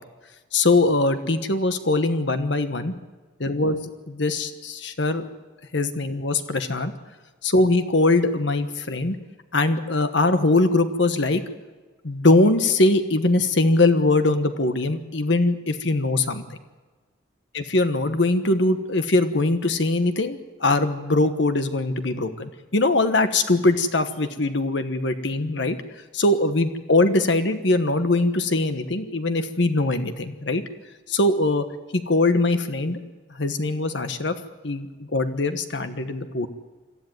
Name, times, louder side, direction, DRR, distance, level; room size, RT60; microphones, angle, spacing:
voice 1, 0.5-2.9 3.4-3.8 4.1-5.3 5.7-6.9 7.4-9.2 9.5-11.4 12.0-16.4 17.5-25.8 26.1-30.6 31.1-31.6 31.9-33.0 33.4-34.3 34.6-36.5, left 2 dB, 60° left, 9 dB, 1.3 m, -22 dB
26.5 x 13.5 x 9.3 m, 1.3 s
head